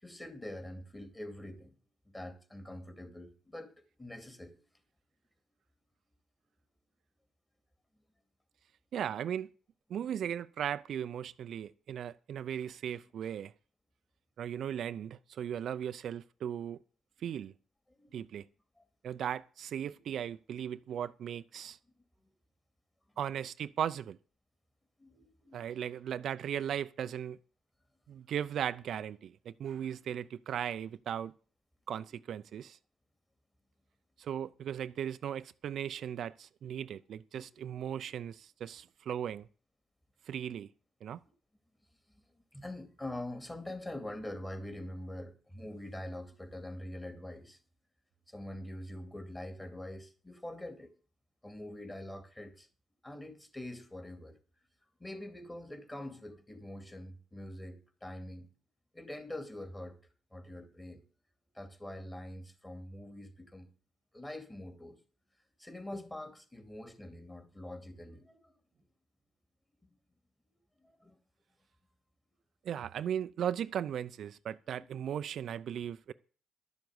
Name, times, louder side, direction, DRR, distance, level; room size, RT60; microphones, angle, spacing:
voice 1, 0.0-1.8 2.1-3.7 4.0-4.6 18.0-18.2 18.8-18.9 19.9-20.0 23.3-23.4 25.0-25.6 42.1-47.6 48.3-50.9 51.4-52.7 53.0-54.4 55.0-58.5 58.9-60.0 60.3-61.0 61.5-63.7 64.1-65.0 65.6-68.5 70.8-71.1, left 1 dB, 15° left, 2.4 m, -44 dB
voice 2, 8.9-9.5 9.9-13.5 14.4-16.8 17.2-17.5 18.1-18.4 19.0-21.8 23.2-24.2 25.5-27.4 28.1-31.3 31.9-32.8 34.2-39.5 40.3-40.7 41.0-41.2 72.6-76.1, right 9 dB, 65° right, 0.5 m, -37 dB
11.5 x 7.1 x 7.9 m
cardioid pair, 90°, 0 cm